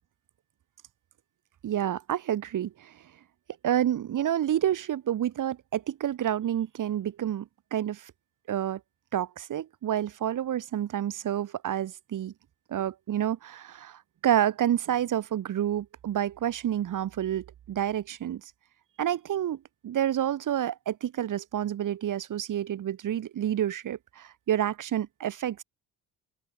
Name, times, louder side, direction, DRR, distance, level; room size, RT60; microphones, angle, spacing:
voice 1, 1.6-2.9 3.6-8.1 8.5-8.8 9.1-12.3 12.7-18.4 19.0-25.6, right 11 dB, 55° right, 2.0 m, -29 dB
open air
cardioid pair, 90°, 37 cm